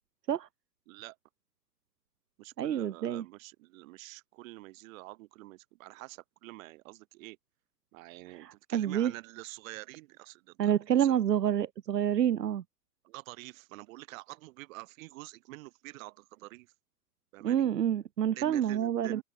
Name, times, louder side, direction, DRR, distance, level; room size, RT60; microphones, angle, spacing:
voice 1, 0.9-1.2 2.4-7.4 7.9-10.7 11.0-11.2 13.0-16.7 17.3-17.7 18.3-19.2, right 20 dB, 55° right, 7.4 m, -47 dB
voice 2, 2.6-3.2 8.3-9.1 10.6-12.6 17.4-19.2, right 10 dB, 85° right, 1.1 m, -28 dB
open air
hypercardioid pair, 105°, 47 cm